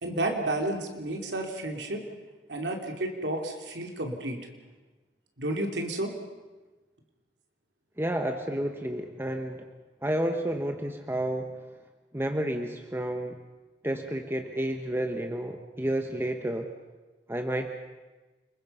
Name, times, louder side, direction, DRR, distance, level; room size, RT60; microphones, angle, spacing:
voice 1, 0.0-2.0 2.5-4.4 5.4-6.1, right 1 dB, 90° right, 3 dB, 3.0 m, -31 dB
voice 2, 8.0-9.7 10.0-11.6 12.1-13.4 13.8-16.7 17.3-17.7, right 1 dB, 15° right, 5 dB, 1.2 m, -30 dB
29.5 x 21.5 x 5.6 m, 1.2 s
head